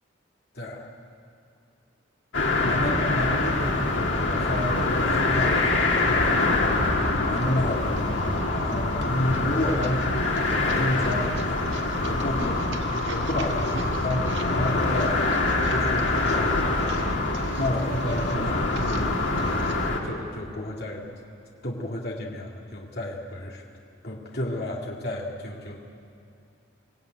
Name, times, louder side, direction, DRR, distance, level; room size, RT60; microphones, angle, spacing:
voice 1, 0.5-0.9 2.6-6.8 7.1-10.3 10.6-12.6 12.9-15.2 15.7-17.1 17.6-19.7 20.0-21.1 21.6-23.6 24.0-25.8, left 1 dB, 55° left, -1 dB, 2.2 m, -31 dB
sound 1, 2.3-20.0, left 2 dB, 90° left, 2.7 m, -25 dB
sound 2, 2.6-19.9, right 1 dB, 75° right, 1.5 m, -35 dB
24.0 x 16.5 x 9.2 m, 2.6 s
head